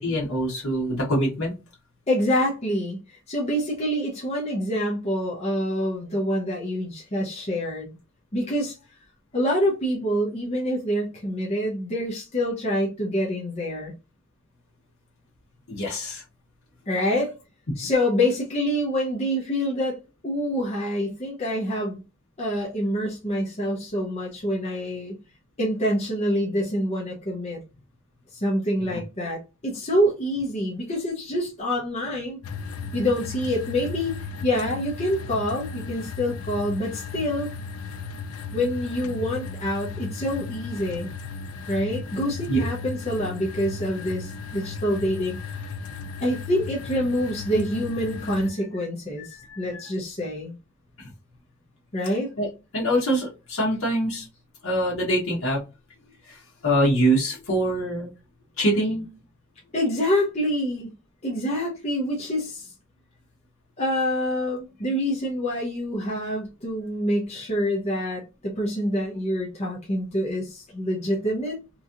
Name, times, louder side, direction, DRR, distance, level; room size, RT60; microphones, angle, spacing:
voice 1, 0.0-1.5 15.7-16.2 28.9-29.0 42.5-42.6 49.2-49.6 51.0-51.1 52.4-52.5 52.7-54.3 54.6-55.6 56.3-58.1 58.6-59.1, right 1 dB, 65° left, 1.0 m, -24 dB
voice 2, 2.1-7.9 8.3-8.8 9.3-13.9 16.9-17.3 17.8-22.0 22.4-25.2 25.6-27.6 28.3-32.4 32.9-34.1 34.4-37.5 38.5-41.1 41.7-45.7 46.2-50.5 51.9-52.3 59.7-60.9 61.2-62.7 63.8-71.6, equal, 30° left, 0.7 m, -26 dB
sound 1, 32.4-48.5, left 4 dB, 85° left, 0.4 m, -36 dB
3.0 x 2.7 x 2.4 m
head